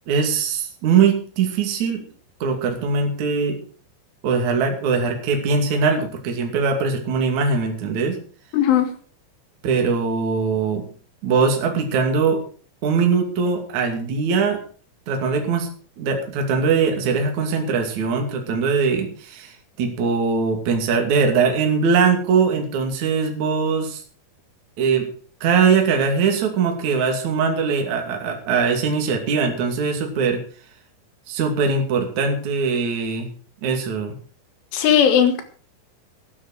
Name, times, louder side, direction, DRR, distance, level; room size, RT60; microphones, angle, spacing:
voice 1, 0.1-2.0 2.4-3.6 4.2-8.2 9.6-10.9 11.2-12.4 12.8-14.6 15.1-15.7 16.0-24.0 24.8-25.1 25.4-30.4 31.3-33.3 33.6-34.1, right 5 dB, 45° right, 3 dB, 3.2 m, -21 dB
voice 2, 8.5-8.9 34.7-35.4, left 9 dB, 85° left, 7 dB, 4.5 m, -17 dB
13.0 x 10.0 x 6.5 m, 0.42 s
omnidirectional pair, 5.4 m